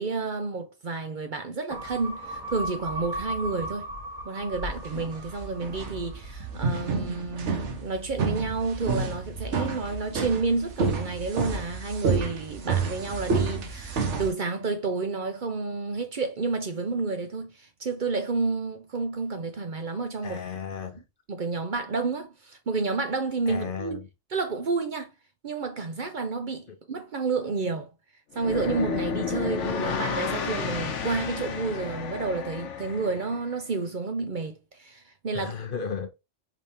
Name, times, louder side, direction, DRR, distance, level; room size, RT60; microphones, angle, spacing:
voice 1, 0.0-3.9 4.2-20.4 21.3-24.0 24.3-25.1 25.4-27.9 28.3-35.5, right 4 dB, 50° right, 0.7 m, -30 dB
sound 1, 1.7-6.4 6.8-6.9, right 1 dB, 5° right, 1.8 m, -37 dB
sound 2, 4.6-14.3, right 4 dB, 70° right, 1.2 m, -29 dB
voice 2, 20.2-21.0 23.5-24.0 35.3-36.1, left 6 dB, 55° left, 0.7 m, -34 dB
sound 3, 28.3-33.4, left 6 dB, 75° left, 1.1 m, -31 dB
4.9 x 3.4 x 2.7 m
omnidirectional pair, 1.3 m